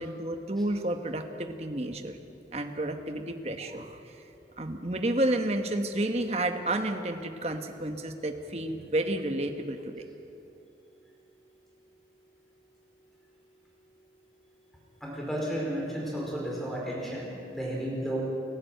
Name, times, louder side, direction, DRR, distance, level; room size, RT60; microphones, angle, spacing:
voice 1, 0.0-2.2 2.5-4.2 4.6-10.1, right 1 dB, 35° right, 6 dB, 1.2 m, -31 dB
voice 2, 15.0-18.2, equal, ahead, -4 dB, 4.8 m, -33 dB
29.0 x 11.0 x 8.0 m, 2.8 s
head